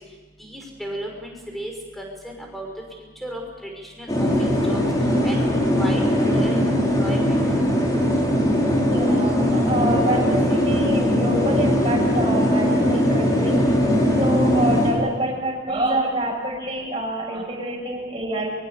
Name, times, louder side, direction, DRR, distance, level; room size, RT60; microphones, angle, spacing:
voice 1, 0.4-2.7 3.2-4.8 5.2-5.5 5.8-6.0 6.3-6.6 7.0-7.3, equal, ahead, 1 dB, 6.0 m, -34 dB
sound 1, 4.1-14.9, equal, 20° left, 5.1 m, -20 dB
voice 2, 8.9-13.6 14.2-18.5, right 1 dB, 25° right, -2 dB, 7.2 m, -26 dB
23.0 x 23.0 x 8.5 m, 1.3 s
head